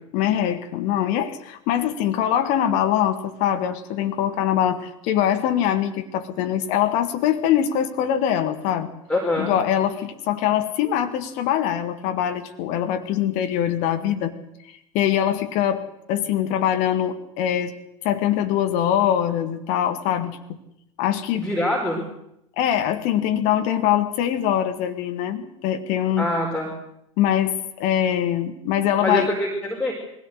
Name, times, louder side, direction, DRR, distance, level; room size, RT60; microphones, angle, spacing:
voice 1, 0.1-8.9 9.4-14.3 14.7-15.8 16.1-17.7 18.0-20.4 21.0-21.5 22.6-26.3 27.2-29.3, left 10 dB, 50° left, 7 dB, 1.8 m, -23 dB
voice 2, 9.1-9.6 21.3-22.0 26.2-26.7 29.0-29.9, left 1 dB, 5° left, -1 dB, 4.4 m, -24 dB
22.0 x 16.5 x 8.1 m, 0.81 s
figure-of-eight pair, 80°, 17 cm